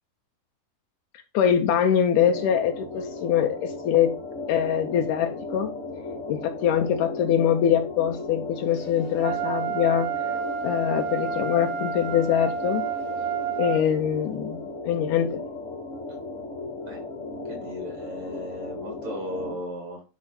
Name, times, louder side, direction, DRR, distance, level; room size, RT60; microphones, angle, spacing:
voice 1, 1.3-4.1 4.5-5.7 6.3-10.1 10.6-12.9 13.6-15.4, left 9 dB, 80° left, 4 dB, 2.3 m, -23 dB
sound 1, 2.2-19.5, left 3 dB, 40° left, 1.0 m, -36 dB
Wind instrument woodwind instrument, 9.2-13.8, right 7 dB, 75° right, 2.6 m, -30 dB
voice 2, 17.5-20.0, equal, 60° right, 0 dB, 4.6 m, -36 dB
10.5 x 3.6 x 4.3 m, 0.32 s
omnidirectional pair, 3.7 m